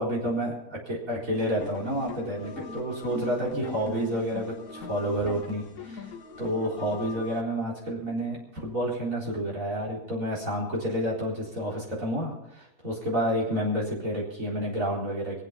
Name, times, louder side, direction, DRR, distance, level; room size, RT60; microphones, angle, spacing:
voice 1, 0.0-6.1 6.4-15.4, equal, 65° right, -5 dB, 4.5 m, -30 dB
sound 1, 1.4-7.4, left 4 dB, 80° left, 1.7 m, -40 dB
24.5 x 8.3 x 5.7 m, 0.79 s
omnidirectional pair, 1.5 m